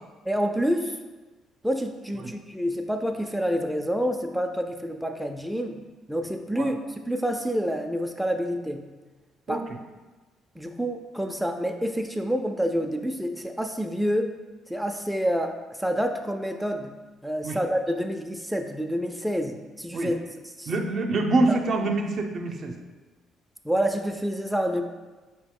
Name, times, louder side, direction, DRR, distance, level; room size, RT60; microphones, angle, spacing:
voice 1, 0.3-0.9 1.6-5.8 6.1-6.8 7.1-8.9 9.5-9.6 10.6-14.3 14.7-16.9 17.2-20.2 20.6-20.7 23.6-24.8, equal, ahead, 3 dB, 0.4 m, -28 dB
voice 2, 20.7-22.7, right 2 dB, 55° right, 4 dB, 0.5 m, -25 dB
4.6 x 2.9 x 3.6 m, 1.2 s
supercardioid pair, 80°, 0 cm